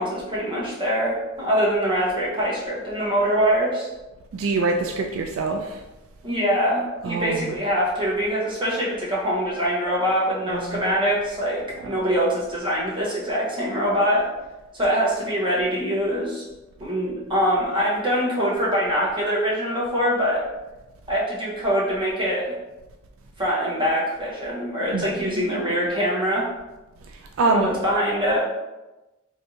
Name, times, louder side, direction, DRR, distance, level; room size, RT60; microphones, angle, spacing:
voice 1, 0.0-3.9 6.2-14.3 14.8-16.4 16.8-20.4 21.1-22.5 23.4-26.4 27.5-28.4, equal, 25° right, -6 dB, 1.0 m, -23 dB
voice 2, 4.3-5.8 7.0-7.5 10.5-10.9 11.8-12.0 24.9-25.7 27.1-27.7, right 3 dB, 75° right, 3 dB, 0.3 m, -26 dB
3.2 x 2.8 x 2.7 m, 1.0 s
head